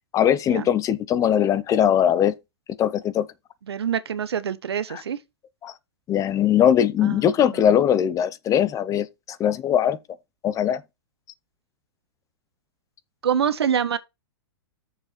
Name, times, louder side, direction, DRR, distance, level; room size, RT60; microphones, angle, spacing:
voice 1, 0.1-2.3 2.8-3.3 4.9-5.0 5.6-5.7 6.1-10.0 10.4-10.8, left 9 dB, 25° left, 0.8 m, -20 dB
voice 2, 3.7-5.2 7.0-7.2 7.6-7.7 13.2-14.0, right 8 dB, 75° right, 1.0 m, -25 dB
8.8 x 6.9 x 4.2 m
hypercardioid pair, 110°, 13 cm